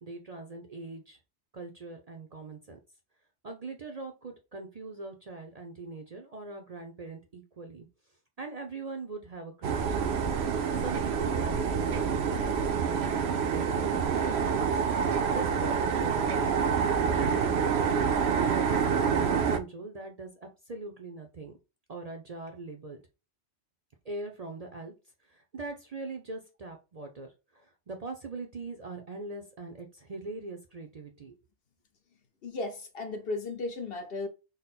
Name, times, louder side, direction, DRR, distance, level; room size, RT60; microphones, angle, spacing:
voice 1, 0.0-1.2 1.5-2.8 3.4-7.9 8.4-10.2 10.8-14.8 15.3-16.5 17.1-21.5 21.9-23.0 24.0-24.9 25.2-31.3, right 3 dB, 45° right, 0.6 m, -41 dB
sound 1, 9.6-19.6, right 6 dB, 70° right, 0.8 m, -27 dB
voice 2, 32.4-34.3, left 2 dB, 55° left, 0.9 m, -35 dB
4.0 x 2.1 x 3.9 m
omnidirectional pair, 1.2 m